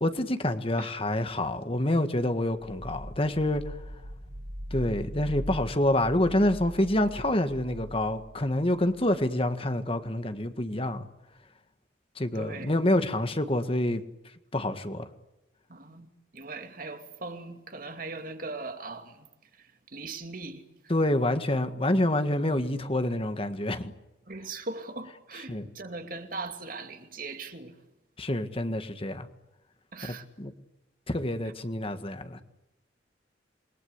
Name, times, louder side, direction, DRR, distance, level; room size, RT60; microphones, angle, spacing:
voice 1, 0.0-3.8 4.7-11.1 12.2-14.0 14.5-15.1 20.9-23.9 25.5-25.7 28.2-29.3 30.0-30.5 31.1-32.4, left 1 dB, 30° left, 1.7 m, -27 dB
sound 1, 2.6-9.3, equal, 90° right, 3.8 m, -41 dB
voice 2, 12.3-12.7 15.7-16.1 16.3-19.3 19.5-20.6 24.3-27.8 29.9-30.2, right 3 dB, 50° right, 2.5 m, -39 dB
28.5 x 22.0 x 8.3 m
head